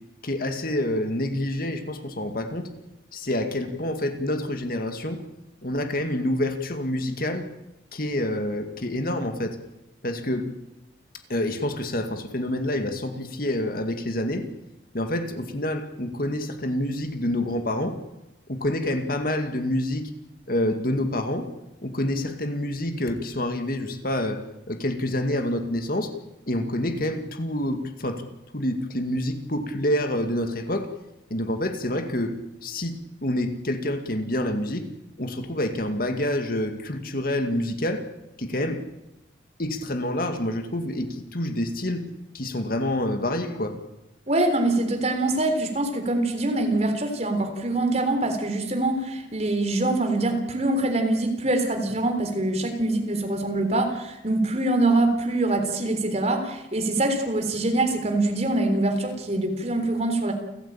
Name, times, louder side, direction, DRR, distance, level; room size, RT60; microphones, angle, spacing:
voice 1, 0.2-2.7 3.1-5.2 5.6-7.5 7.9-9.6 10.0-10.5 11.3-14.5 14.9-18.0 18.5-20.1 20.5-21.5 21.8-26.1 26.5-28.2 28.5-30.9 31.3-34.9 35.2-38.1 38.4-38.8 39.6-42.1 42.3-43.8, left 1 dB, 50° left, 7 dB, 2.3 m, -27 dB
voice 2, 44.3-60.3, right 2 dB, 35° right, 5 dB, 3.7 m, -24 dB
29.5 x 14.5 x 8.9 m, 0.92 s
head